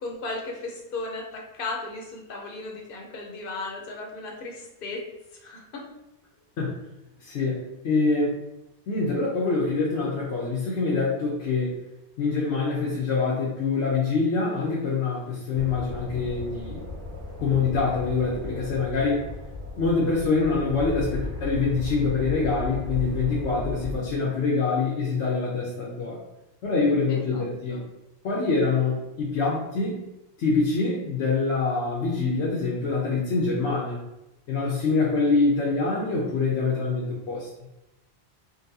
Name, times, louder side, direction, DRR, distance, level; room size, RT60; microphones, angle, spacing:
voice 1, 0.0-5.0 5.4-5.8 27.1-27.4 27.7-27.8, left 3 dB, 55° left, 0 dB, 0.8 m, -35 dB
voice 2, 7.2-7.6 7.8-8.3 8.9-11.7 12.2-16.9 17.4-19.3 19.7-26.2 26.6-27.8 28.2-30.0 30.4-34.0 34.5-37.5, left 4 dB, 85° left, -5 dB, 1.0 m, -25 dB
sound 1, 15.5-24.0, left 2 dB, 75° right, 1.2 m, -35 dB
3.9 x 2.3 x 2.6 m, 0.92 s
omnidirectional pair, 1.1 m